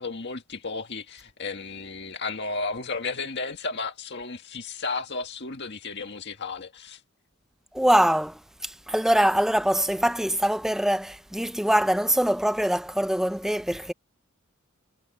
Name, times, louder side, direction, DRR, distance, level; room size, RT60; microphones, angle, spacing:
voice 1, 0.0-7.0, left 4 dB, 50° left, 1.9 m, -33 dB
voice 2, 7.7-13.9, equal, ahead, 0.5 m, -23 dB
head